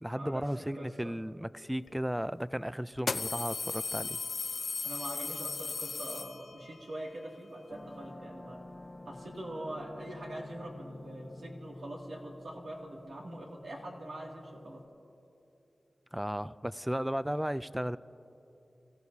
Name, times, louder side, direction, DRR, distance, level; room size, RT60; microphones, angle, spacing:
voice 1, 0.0-4.2 16.1-18.0, equal, 5° right, 15 dB, 0.3 m, -35 dB
voice 2, 0.8-1.2 4.8-8.6 9.1-14.8, right 1 dB, 85° right, -2 dB, 2.3 m, -43 dB
sound 1, 1.9-2.0 3.0-6.8, left 4 dB, 70° left, 0.5 m, -36 dB
sound 2, 7.7-14.8, left 1 dB, 25° left, 1.2 m, -49 dB
27.5 x 15.5 x 2.8 m, 2.8 s
wide cardioid pair, 70°, 0 cm